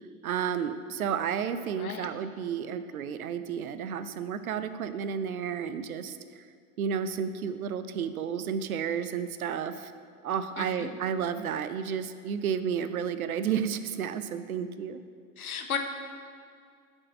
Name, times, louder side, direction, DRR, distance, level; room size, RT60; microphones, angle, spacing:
voice 1, 0.2-6.4 6.8-9.9 10.2-15.0, right 7 dB, 70° right, 11 dB, 0.7 m, -32 dB
voice 2, 1.7-2.1 10.6-10.9 15.4-15.8, left 7 dB, 75° left, 6 dB, 1.0 m, -34 dB
7.4 x 6.3 x 6.5 m, 2.1 s
figure-of-eight pair, 80°, 44 cm